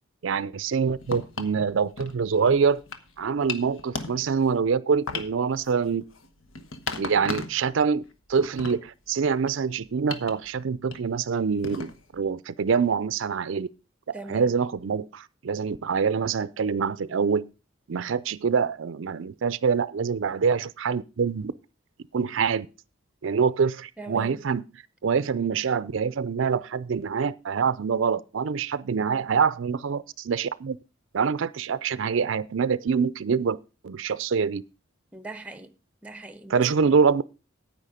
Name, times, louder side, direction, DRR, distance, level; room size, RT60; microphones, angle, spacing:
voice 1, 0.2-2.8 3.2-6.0 7.0-8.0 8.3-13.7 14.3-17.5 17.9-21.5 22.1-22.7 23.2-24.6 25.0-30.8 31.1-33.6 33.8-34.6 36.5-37.2, right 6 dB, 75° right, 0.5 m, -25 dB
sound 1, 0.9-1.6 2.0-3.1 3.4-4.6 5.1-7.7 8.0-9.6 10.1-10.4 10.9-11.2 11.6-12.2, left 4 dB, 85° left, 1.2 m, -36 dB
voice 2, 14.1-14.5 24.0-24.4 35.1-35.7 36.0-36.9, right 2 dB, 5° right, 0.7 m, -40 dB
9.8 x 8.8 x 5.0 m
head